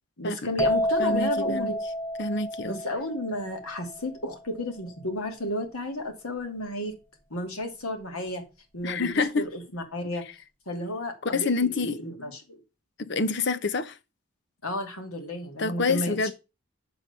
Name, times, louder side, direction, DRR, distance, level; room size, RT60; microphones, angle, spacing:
voice 1, 0.2-1.8 2.6-6.9 7.3-8.4 8.7-10.2 10.7-12.6 14.6-16.3, left 1 dB, 85° left, 2.5 m, -32 dB
sound 1, 0.6-4.2, equal, 10° left, 1.1 m, -29 dB
voice 2, 1.0-1.7 2.2-2.8 8.8-9.5 11.2-12.0 13.0-14.0 15.6-16.3, left 4 dB, 55° left, 0.7 m, -27 dB
9.1 x 4.0 x 6.7 m
head